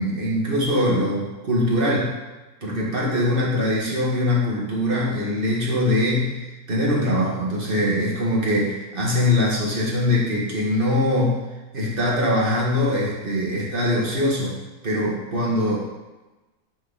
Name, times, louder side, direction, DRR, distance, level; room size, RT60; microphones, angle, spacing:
voice 1, 0.0-2.2 2.6-6.4 6.7-11.4 11.7-14.6 14.8-15.8, left 1 dB, 35° right, -5 dB, 1.8 m, -22 dB
9.3 x 4.0 x 4.1 m, 1.1 s
omnidirectional pair, 1.6 m